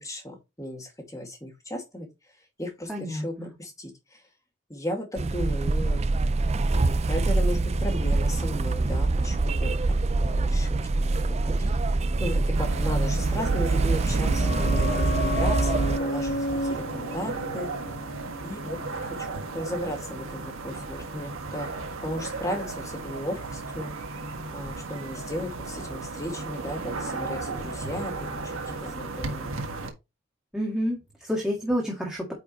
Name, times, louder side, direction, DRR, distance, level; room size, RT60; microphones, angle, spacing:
voice 1, 0.0-2.1 2.6-3.9 4.7-6.0 6.7-11.7 12.2-17.7 18.4-21.7 22.0-23.9 24.5-29.5, left 1 dB, 15° left, 2.2 m, -35 dB
voice 2, 2.9-3.5 30.5-32.3, equal, 5° right, 1.8 m, -29 dB
sound 1, 5.2-16.0, right 3 dB, 30° right, 0.4 m, -24 dB
sound 2, 12.5-29.9, right 3 dB, 90° right, 1.6 m, -35 dB
sound 3, 13.7-19.1 19.3-19.4, left 2 dB, 65° left, 0.9 m, -33 dB
9.2 x 4.6 x 3.1 m
head